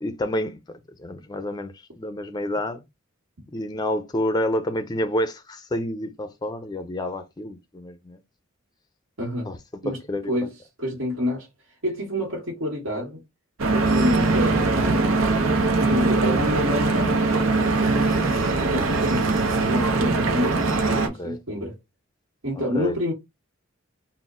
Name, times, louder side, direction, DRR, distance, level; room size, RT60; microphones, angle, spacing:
voice 1, 0.0-2.8 3.5-8.2 9.5-9.6 9.9-10.3 14.3-14.5 20.7-21.4 22.7-22.9, left 1 dB, 20° left, 0.5 m, -29 dB
voice 2, 9.2-9.5 9.8-10.0 10.3-10.5 10.8-11.5 11.8-13.2 13.7-15.0 15.7-17.5 17.8-19.3 19.6-21.7 22.4-23.1, left 1 dB, 75° right, 1.5 m, -28 dB
Stream / Boat Water vehicle, 13.6-21.1, right 3 dB, 90° right, 0.8 m, -21 dB
4.0 x 2.2 x 3.7 m
head